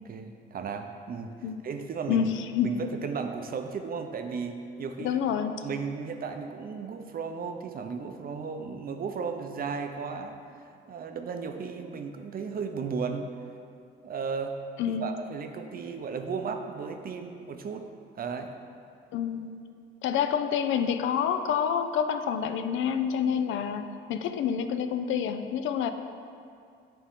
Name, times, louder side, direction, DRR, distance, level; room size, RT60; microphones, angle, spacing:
voice 1, 0.0-1.4 1.6-2.3 2.6-5.2 5.6-10.4 10.9-13.3 14.0-14.6 14.9-17.9 18.2-18.5, right 5 dB, 50° right, 6 dB, 0.6 m, -35 dB
voice 2, 2.1-2.8 5.0-5.6 14.8-15.1 19.1-19.5 20.0-25.9, left 8 dB, 80° left, 9 dB, 0.4 m, -28 dB
8.7 x 3.7 x 3.6 m, 2.4 s
cardioid pair, 90°, 20 cm